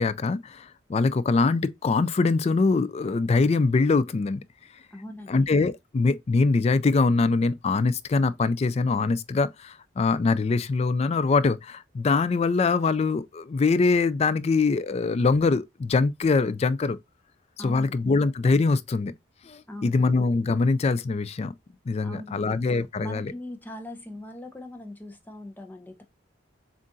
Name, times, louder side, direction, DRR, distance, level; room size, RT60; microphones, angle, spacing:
voice 1, 0.0-4.4 5.3-17.0 17.6-19.1 19.4-21.5 21.9-23.3, left 4 dB, 30° left, 0.3 m, -23 dB
voice 2, 4.9-5.5 17.6-18.1 19.7-20.1 22.0-22.5 23.0-26.0, left 1 dB, 10° left, 0.7 m, -40 dB
7.3 x 2.5 x 2.6 m
head